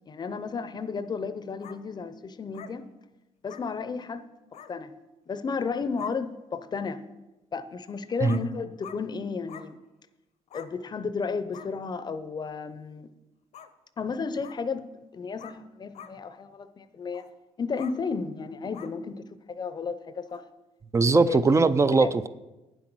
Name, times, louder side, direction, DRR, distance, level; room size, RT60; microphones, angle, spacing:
voice 1, 0.1-2.9 3.4-4.2 4.7-4.9 5.3-7.0 7.5-9.8 10.5-13.1 14.0-14.9 15.1-17.3 17.6-20.4 21.1-21.4 21.9-22.1, left 5 dB, 35° left, 0.7 m, -33 dB
sound 1, 1.6-1.8 2.5-2.7 3.5-3.6 4.5-4.7 5.6-5.7 6.0-6.1 7.8-7.9 8.3-8.4 8.8-9.0 9.5-9.7 10.5-10.7 11.5-11.7 13.5-13.7 14.4-14.6 15.4-15.6 15.9-16.1 17.1-17.3 17.8-18.0 18.7-18.9 20.3-20.4, left 9 dB, 70° left, 0.8 m, -45 dB
voice 2, 20.9-22.3, right 4 dB, 25° right, 0.4 m, -20 dB
9.3 x 7.9 x 6.1 m
cardioid pair, 120°, 12 cm